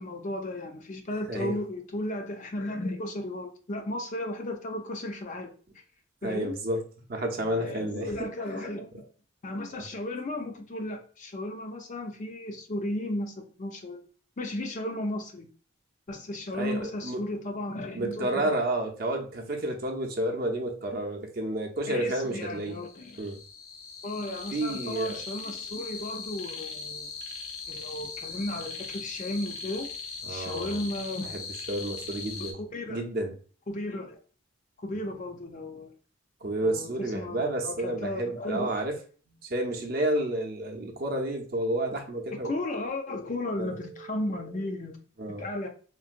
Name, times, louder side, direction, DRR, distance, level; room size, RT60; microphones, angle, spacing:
voice 1, 0.0-5.5 6.2-6.6 7.4-9.1 9.4-14.0 14.4-15.5 16.1-18.5 21.9-23.2 24.0-27.1 27.7-29.9 30.3-31.3 32.5-33.0 33.7-34.2 34.8-35.9 36.6-38.7 42.3-45.0 45.4-45.7, left 1 dB, 35° left, 0.4 m, -35 dB
voice 2, 1.3-1.6 6.2-6.8 7.1-9.0 9.7-9.8 16.6-17.2 17.9-22.7 23.2-23.4 24.5-25.2 30.2-30.8 31.3-32.6 32.9-33.4 36.4-39.0 39.3-42.5 43.6-43.7 45.2-45.4, right 1 dB, 45° right, 0.6 m, -31 dB
sound 1, 22.5-32.5, left 5 dB, 85° left, 0.6 m, -40 dB
3.8 x 2.2 x 2.4 m
head